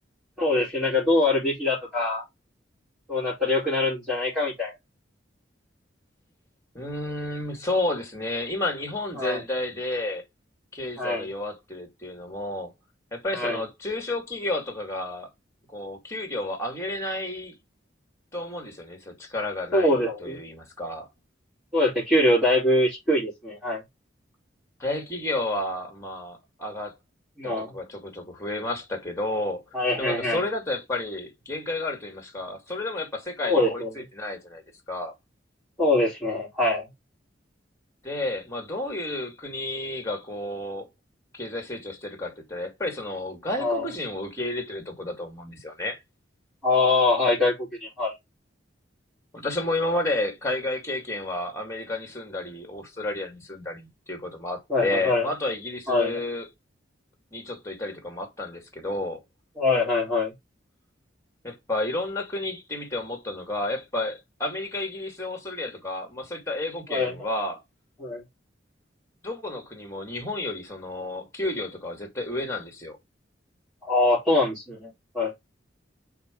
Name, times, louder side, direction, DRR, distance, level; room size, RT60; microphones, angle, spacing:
voice 1, 0.4-2.2 3.1-4.7 9.2-9.4 11.0-11.2 13.3-13.6 19.7-20.4 21.7-23.8 27.4-27.7 29.7-30.4 33.4-33.9 35.8-36.9 43.6-43.9 46.6-48.1 54.7-55.3 55.9-56.2 59.6-60.3 66.9-67.1 68.0-68.2 73.9-74.9 75.1-75.3, left 2 dB, 5° right, 4.3 m, -23 dB
voice 2, 6.7-10.2 10.7-12.7 13.1-15.3 15.7-17.6 18.3-21.1 24.8-27.0 27.4-29.6 30.0-34.6 34.9-35.1 38.0-40.9 41.3-46.0 49.3-56.5 57.3-59.2 61.4-67.6 69.2-73.0, left 2 dB, 15° left, 2.9 m, -31 dB
5.8 x 5.1 x 5.3 m
head